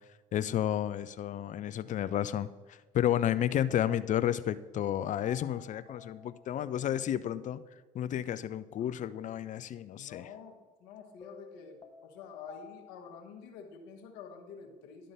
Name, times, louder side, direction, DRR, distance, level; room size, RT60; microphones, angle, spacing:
voice 1, 0.3-7.6 7.9-10.2, left 11 dB, 45° left, 15 dB, 0.5 m, -31 dB
sound 1, 1.6-1.8 5.2-7.6 11.2-13.2, left 6 dB, 20° left, 1.1 m, -53 dB
voice 2, 9.9-15.1, left 6 dB, 75° left, 3 dB, 1.1 m, -48 dB
11.0 x 3.8 x 5.4 m, 1.3 s
hypercardioid pair, 65°, 18 cm